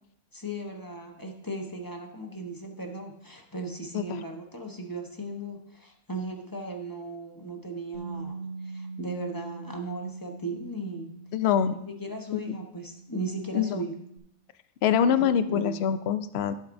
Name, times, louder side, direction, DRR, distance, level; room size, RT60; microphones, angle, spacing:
voice 1, 0.3-11.1 11.7-13.9 15.2-15.8, right 2 dB, 20° left, 2 dB, 0.9 m, -37 dB
Bass guitar, 7.9-14.2, right 3 dB, 80° left, 3.2 m, -43 dB
voice 2, 11.3-11.8 12.3-12.4 13.5-13.8 14.8-16.5, left 8 dB, 60° left, 12 dB, 0.7 m, -24 dB
14.0 x 8.2 x 2.6 m, 0.74 s
omnidirectional pair, 1.4 m